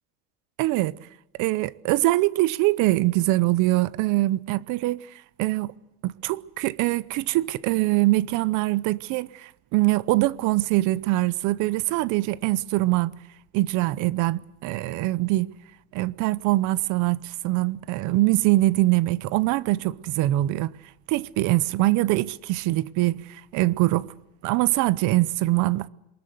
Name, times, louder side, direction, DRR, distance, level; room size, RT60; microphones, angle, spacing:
voice 1, 0.6-0.9 1.4-5.0 5.4-5.7 6.0-13.2 13.5-15.5 15.9-20.7 21.1-24.1 24.4-25.9, right 18 dB, 50° right, 0.7 m, -23 dB
23.0 x 20.5 x 7.9 m
cardioid pair, 155°, 40 cm